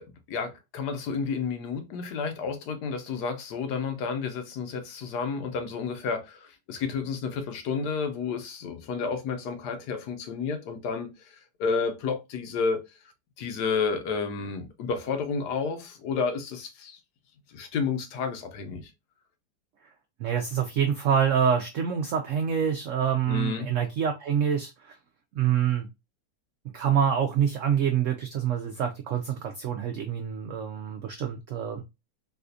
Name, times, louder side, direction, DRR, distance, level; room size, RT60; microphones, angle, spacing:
voice 1, 0.0-12.8 13.4-17.0 17.5-18.9 23.3-23.7, left 5 dB, 75° left, 1.3 m, -31 dB
voice 2, 20.2-24.9 25.4-25.9 26.7-31.8, right 8 dB, 80° right, 0.7 m, -26 dB
4.1 x 2.4 x 2.5 m
omnidirectional pair, 1.8 m